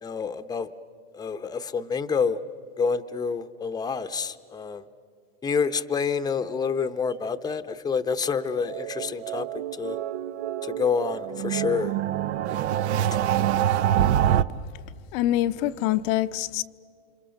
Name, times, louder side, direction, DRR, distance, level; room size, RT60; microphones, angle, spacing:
voice 1, 0.0-0.7 1.1-2.4 2.8-4.9 5.4-10.0 10.6-11.9, left 5 dB, 10° left, 0.8 m, -28 dB
sound 1, 8.3-14.4, right 11 dB, 80° right, 0.8 m, -26 dB
voice 2, 15.1-16.6, left 14 dB, 60° left, 0.7 m, -25 dB
29.5 x 26.0 x 6.5 m
supercardioid pair, 115°, 33 cm